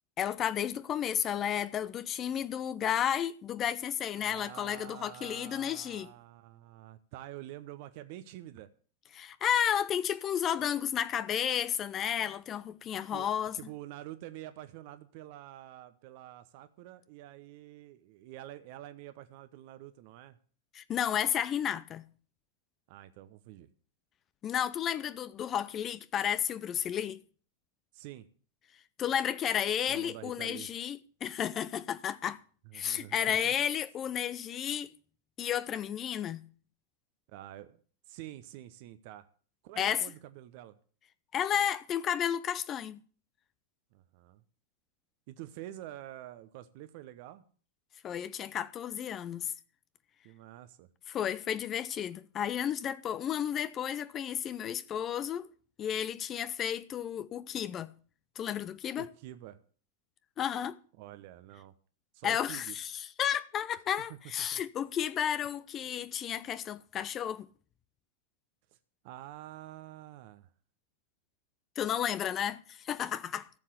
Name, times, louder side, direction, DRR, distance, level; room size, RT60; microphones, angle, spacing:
voice 1, 0.2-6.1 9.1-13.6 20.7-22.0 24.4-27.2 29.0-32.4 32.7-34.9 35.4-36.4 39.8-40.0 41.3-43.0 48.0-49.5 51.1-55.5 55.8-57.9 58.4-59.1 60.4-60.8 62.2-67.5 71.8-73.5, left 9 dB, 30° left, 0.7 m, -32 dB
voice 2, 4.2-8.7 13.1-13.3 13.5-20.4 22.9-23.7 27.9-28.3 29.9-30.7 32.6-33.5 37.3-37.8 38.1-39.3 39.6-40.8 43.9-44.4 45.3-47.4 50.2-50.9 59.0-59.6 61.0-61.7 62.1-62.8 64.4-64.6 68.7-68.8 69.0-70.5, right 14 dB, 45° right, 0.9 m, -47 dB
14.0 x 7.6 x 8.1 m
figure-of-eight pair, 90°, 0 cm